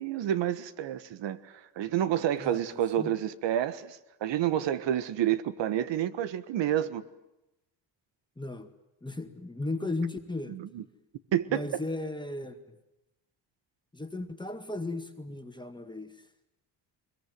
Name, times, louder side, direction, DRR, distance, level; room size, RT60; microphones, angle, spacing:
voice 1, 0.0-1.4 1.8-7.0 10.5-10.8 11.3-11.6, right 11 dB, 75° right, 1.5 m, -29 dB
voice 2, 2.4-3.1 8.4-8.7 9.0-10.6 11.5-12.8 13.9-16.1, left 2 dB, 10° left, 1.9 m, -36 dB
22.0 x 22.0 x 9.4 m
cardioid pair, 85°, 44 cm